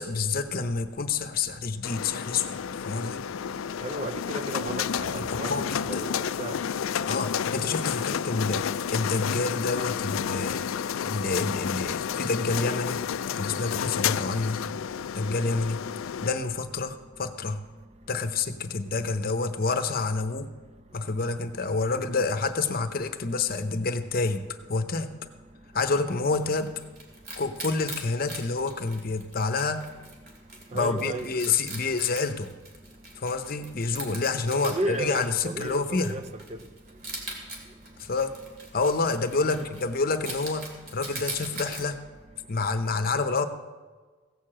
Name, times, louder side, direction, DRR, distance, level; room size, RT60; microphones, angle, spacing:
voice 1, 0.0-2.6 2.8-3.3 5.1-6.0 7.1-10.6 11.0-13.0 13.4-14.6 15.1-15.8 16.2-17.6 18.1-20.5 20.9-25.1 25.7-26.7 27.4-29.9 30.7-32.5 33.2-36.2 38.0-38.3 38.7-42.0 42.5-43.5, left 4 dB, 45° left, 9 dB, 0.7 m, -28 dB
sound 1, 1.8-16.3, left 8 dB, 80° left, 0.4 m, -31 dB
voice 2, 3.8-6.5 30.7-31.3 34.5-36.2 39.4-39.6, right 2 dB, 30° right, 8 dB, 0.6 m, -33 dB
Wild animals, 25.9-41.8, right 2 dB, 50° right, 2.9 m, -42 dB
16.0 x 6.7 x 7.5 m, 1.4 s
head